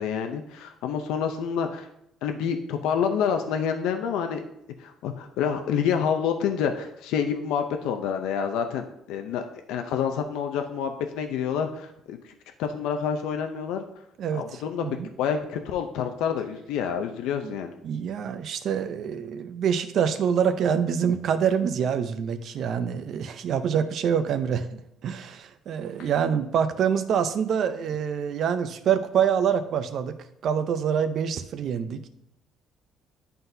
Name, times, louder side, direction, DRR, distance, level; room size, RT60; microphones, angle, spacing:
voice 1, 0.0-1.9 2.2-4.4 4.8-12.3 12.6-13.8 14.3-17.7, left 7 dB, 90° left, 6 dB, 0.5 m, -28 dB
voice 2, 17.8-30.2 30.4-32.1, right 7 dB, 60° right, 10 dB, 0.5 m, -26 dB
11.0 x 3.9 x 2.7 m, 0.80 s
cardioid pair, 125°, 0 cm